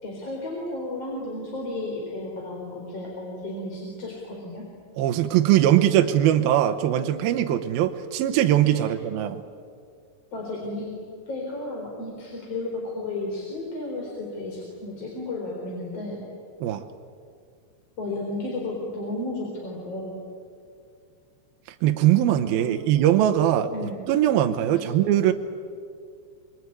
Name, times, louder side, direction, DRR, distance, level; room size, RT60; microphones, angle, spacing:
voice 1, 0.0-4.6 8.7-8.9 10.3-10.9 11.3-16.2 18.0-20.2 22.5-22.7 23.7-24.0 24.6-24.8, left 2 dB, 35° left, -2 dB, 4.6 m, -33 dB
voice 2, 5.0-9.4 16.6-16.8 21.8-25.3, right 12 dB, 75° right, 6 dB, 2.2 m, -21 dB
25.5 x 24.0 x 9.7 m, 2.2 s
omnidirectional pair, 5.6 m